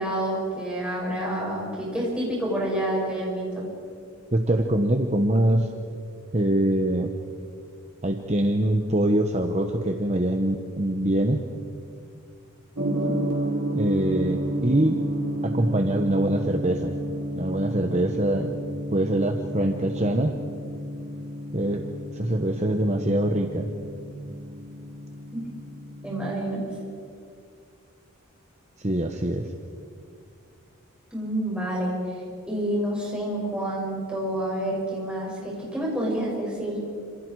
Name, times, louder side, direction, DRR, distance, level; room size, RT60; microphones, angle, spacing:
voice 1, 0.0-3.7 12.8-13.1 25.3-25.4 26.0-26.6 31.1-31.9 32.5-36.8, right 1 dB, 5° right, -5 dB, 6.7 m, -28 dB
voice 2, 4.3-5.7 6.3-7.1 8.0-11.4 13.7-15.0 15.4-16.9 17.3-18.5 18.9-20.4 21.5-21.8 22.1-23.7 28.8-29.5, right 1 dB, 30° right, 4 dB, 1.1 m, -24 dB
Gong, 12.8-26.5, equal, 85° right, 3.1 m, -31 dB
28.0 x 26.5 x 4.8 m, 2.4 s
head